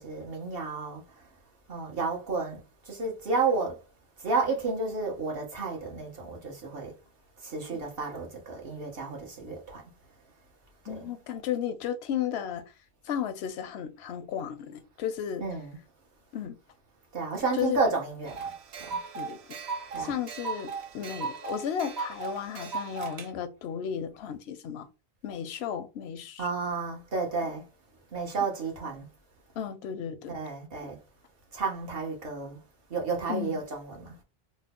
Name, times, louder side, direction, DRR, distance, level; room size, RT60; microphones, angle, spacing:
voice 1, 0.0-1.4 1.7-3.9 4.2-7.0 7.4-9.9 10.8-11.1 15.4-15.8 17.1-19.0 19.9-20.2 26.4-27.7 28.1-29.1 30.3-31.0 31.5-32.6 32.9-34.2, right 4 dB, 65° right, 1.3 m, -32 dB
voice 2, 10.9-12.6 13.0-15.4 16.3-16.5 17.6-17.8 19.1-19.4 20.0-24.9 25.2-26.4 29.6-30.3 33.3-33.6, left 9 dB, 85° left, 0.8 m, -34 dB
sound 1, 18.3-23.3, right 5 dB, 85° right, 0.9 m, -37 dB
3.2 x 2.1 x 3.5 m
omnidirectional pair, 1.0 m